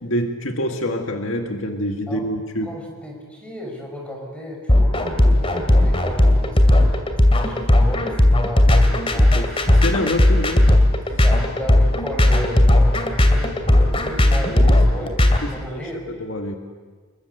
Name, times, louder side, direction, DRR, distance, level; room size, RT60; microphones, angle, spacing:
voice 1, 0.0-2.7 8.9-10.7 14.5-14.8 15.4-15.8 16.2-16.5, equal, 65° left, 3 dB, 1.9 m, -26 dB
voice 2, 2.6-9.5 10.0-10.4 11.1-13.6 13.9-15.2 15.5-16.0, equal, 5° left, 1 dB, 5.9 m, -34 dB
sound 1, 4.7-15.4, left 1 dB, 25° left, 2.6 m, -15 dB
28.0 x 22.0 x 8.1 m, 1.5 s
head